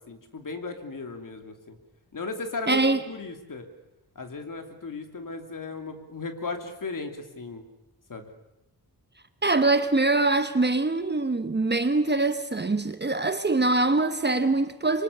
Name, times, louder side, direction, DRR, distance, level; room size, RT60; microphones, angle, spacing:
voice 1, 0.1-1.8 2.1-2.8 3.1-3.7 4.1-7.6 8.1-8.3, left 3 dB, 55° left, 2.9 m, -36 dB
voice 2, 2.7-3.0 9.4-15.0, right 2 dB, 25° right, 1.1 m, -23 dB
26.0 x 24.5 x 6.8 m
wide cardioid pair, 135°, 39 cm